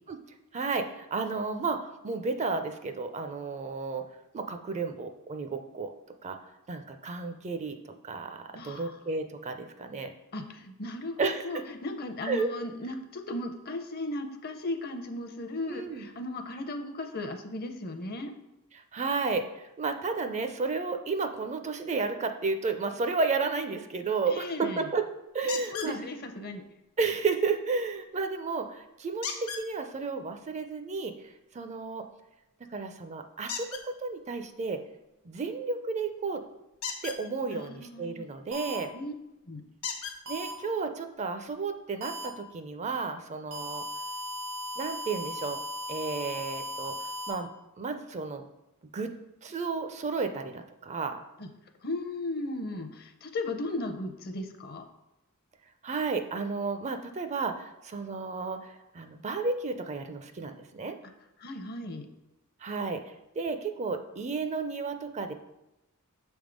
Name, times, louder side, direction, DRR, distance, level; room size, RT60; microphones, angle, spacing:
voice 1, 0.5-4.1 4.3-5.9 6.2-6.4 6.7-10.1 11.2-11.6 12.2-12.5 15.7-16.0 18.9-25.0 25.3-26.0 27.0-31.1 31.5-32.1 32.7-34.8 35.3-36.4 37.0-38.9 40.3-43.8 44.8-45.6 45.9-47.5 47.8-48.4 48.9-49.1 49.4-51.2 55.8-61.0 62.6-65.3, right 4 dB, 30° right, 8 dB, 0.4 m, -32 dB
voice 2, 8.5-9.0 10.3-18.3 24.3-24.9 25.5-26.6 37.5-38.3 38.9-39.1 39.5-39.6 51.4-51.5 51.8-54.9 61.4-62.1, left 2 dB, 45° left, 6 dB, 0.6 m, -36 dB
sound 1, 25.5-25.9 29.2-29.7 33.5-33.8 36.7-37.2 38.9-39.0 39.8-40.2 41.2-41.3 41.8-41.9, left 6 dB, 70° left, 0.9 m, -35 dB
sound 2, 38.5-38.8 40.3-40.5 42.0-42.3 43.5-47.3, left 1 dB, 80° right, 1.2 m, -37 dB
6.3 x 3.5 x 5.1 m, 0.91 s
head